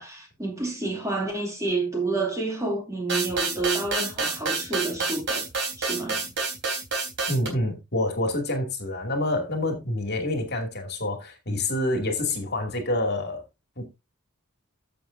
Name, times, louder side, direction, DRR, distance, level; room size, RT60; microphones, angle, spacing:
voice 1, 0.0-5.5 5.8-6.3, right 3 dB, 15° right, 2.5 m, -29 dB
sound 1, 3.1-7.5, right 4 dB, 55° right, 3.6 m, -28 dB
voice 2, 7.3-13.4 13.8-13.9, left 1 dB, 50° left, 2.5 m, -27 dB
14.5 x 7.0 x 2.6 m
head